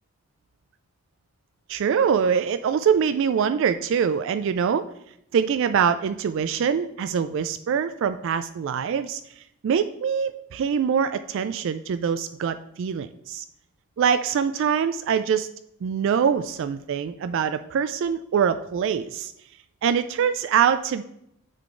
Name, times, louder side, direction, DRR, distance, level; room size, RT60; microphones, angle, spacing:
voice 1, 1.7-4.9 5.3-9.2 9.6-13.4 14.0-15.5 15.8-19.3 19.8-21.0, right 7 dB, 60° right, 11 dB, 0.3 m, -24 dB
8.9 x 3.8 x 3.7 m, 0.77 s
head